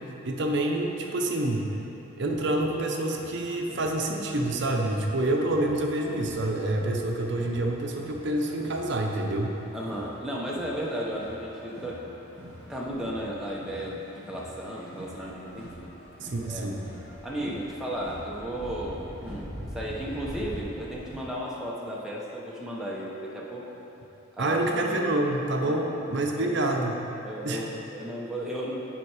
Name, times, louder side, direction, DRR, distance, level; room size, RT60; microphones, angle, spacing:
voice 1, 0.2-1.8 2.2-9.6 16.2-16.8 24.4-27.0 27.4-27.6, right 1 dB, 55° right, 1 dB, 0.7 m, -27 dB
sound 1, 2.2-21.3, equal, 20° left, 1.8 m, -45 dB
voice 2, 9.7-12.0 12.7-15.9 16.4-16.7 17.2-23.7 24.4-25.0 25.6-25.9 26.3-26.6 27.2-28.7, equal, ahead, -5 dB, 0.8 m, -34 dB
7.4 x 5.7 x 4.8 m, 3.0 s
head